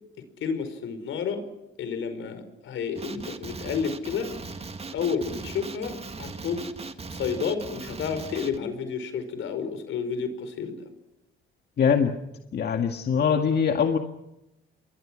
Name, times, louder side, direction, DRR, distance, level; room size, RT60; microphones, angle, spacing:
voice 1, 0.4-1.5 1.8-4.3 4.9-6.7 7.1-10.9, left 6 dB, 80° left, 10 dB, 5.1 m, -31 dB
Male speech man speaking, 3.0-8.6, right 4 dB, 30° right, 2.0 m, -38 dB
voice 2, 11.8-12.2 12.5-14.0, left 6 dB, 55° left, 5 dB, 1.9 m, -22 dB
28.5 x 23.0 x 6.3 m, 0.92 s
cardioid pair, 90°, 20 cm